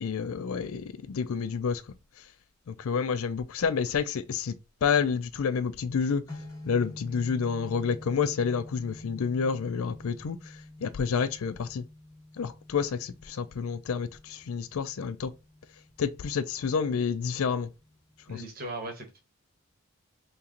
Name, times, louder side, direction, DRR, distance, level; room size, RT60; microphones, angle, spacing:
voice 1, 0.0-1.9 2.7-4.5 4.8-6.3 6.6-11.8 12.4-15.3 16.0-17.7 18.3-18.4, left 6 dB, 70° left, 0.4 m, -29 dB
sound 1, 6.3-18.4, left 2 dB, 15° left, 1.0 m, -48 dB
voice 2, 18.3-19.2, right 2 dB, 40° right, 1.1 m, -38 dB
3.0 x 2.9 x 3.7 m
head